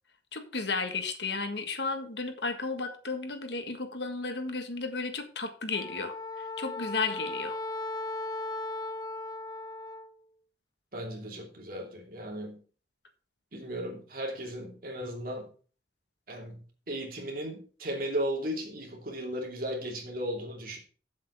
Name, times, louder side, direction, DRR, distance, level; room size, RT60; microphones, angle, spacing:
voice 1, 0.3-7.6, left 4 dB, 70° left, 7 dB, 1.6 m, -34 dB
Wind instrument woodwind instrument, 5.7-10.1, left 2 dB, 20° left, 0.5 m, -37 dB
voice 2, 10.9-12.6 13.5-15.5 16.3-20.8, equal, 50° right, 1 dB, 2.9 m, -36 dB
7.8 x 7.5 x 5.6 m, 0.40 s
head